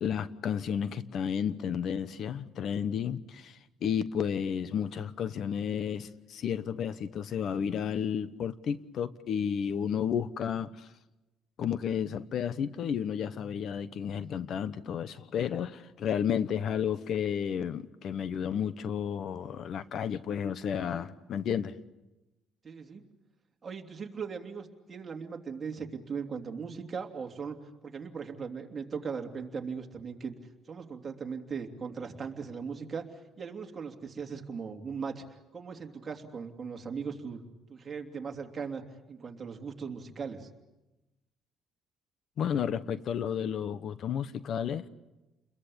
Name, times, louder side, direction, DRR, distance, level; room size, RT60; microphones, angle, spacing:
voice 1, 0.0-10.9 11.6-21.7 42.4-44.9, left 8 dB, 55° left, 1.0 m, -32 dB
voice 2, 22.6-23.0 23.6-27.6 27.8-30.3 30.7-33.1 33.4-37.4 37.7-38.8 39.1-40.5, right 5 dB, 30° right, 3.0 m, -38 dB
30.0 x 22.0 x 8.7 m
cardioid pair, 125°, 0 cm